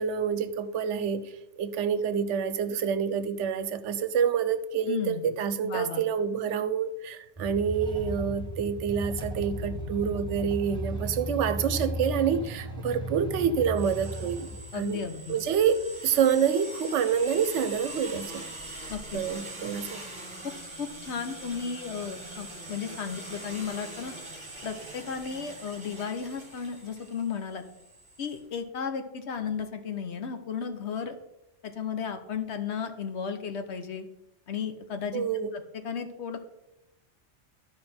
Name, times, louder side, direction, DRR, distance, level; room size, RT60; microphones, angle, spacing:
voice 1, 0.0-15.0 15.3-18.4 19.1-20.0 35.1-35.5, right 7 dB, 80° right, 12 dB, 0.9 m, -27 dB
voice 2, 4.9-5.3 5.6-6.0 14.7-15.4 18.9-19.2 20.4-20.5 20.8-24.1 24.6-27.6 28.2-31.2 31.6-34.1 34.5-35.3 35.5-36.4, left 6 dB, 70° left, 7 dB, 1.1 m, -34 dB
sound 1, 7.4-16.3, right 1 dB, 5° left, 1.2 m, -36 dB
sound 2, 13.7-28.4, right 2 dB, 25° right, 1.5 m, -42 dB
12.5 x 4.7 x 4.3 m, 0.90 s
omnidirectional pair, 1.2 m